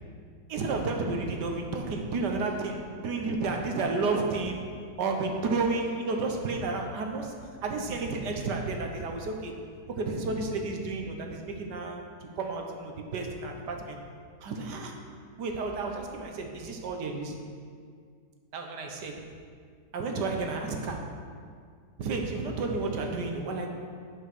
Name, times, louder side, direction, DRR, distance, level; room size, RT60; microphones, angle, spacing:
voice 1, 0.5-4.6 5.0-9.5 9.9-14.0 14.4-15.0 15.4-17.4 18.5-19.3 19.9-21.1 22.0-23.7, right 3 dB, 70° right, 3 dB, 1.5 m, -31 dB
8.2 x 7.1 x 6.1 m, 2.1 s
omnidirectional pair, 1.9 m